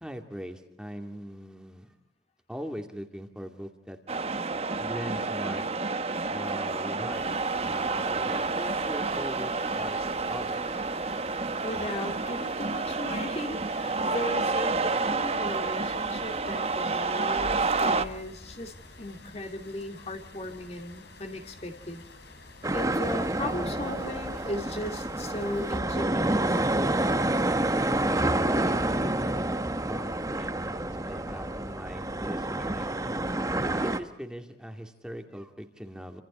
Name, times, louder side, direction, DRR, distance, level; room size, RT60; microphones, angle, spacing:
voice 1, 0.0-1.9 2.5-4.0 4.8-5.6 6.3-7.2 7.6-10.0 10.3-10.6 28.3-33.1 33.7-36.2, equal, 5° right, 4 dB, 2.3 m, -41 dB
sound 1, 4.1-18.0, right 3 dB, 35° right, 1.1 m, -29 dB
sound 2, 7.1-25.8, left 2 dB, 75° left, 5.4 m, -49 dB
voice 2, 11.6-22.0 22.7-26.6 33.5-33.7, left 1 dB, 35° left, 4 dB, 2.4 m, -37 dB
sound 3, 22.6-34.0, right 1 dB, 20° right, 1.4 m, -28 dB
30.0 x 26.5 x 4.3 m, 0.79 s
head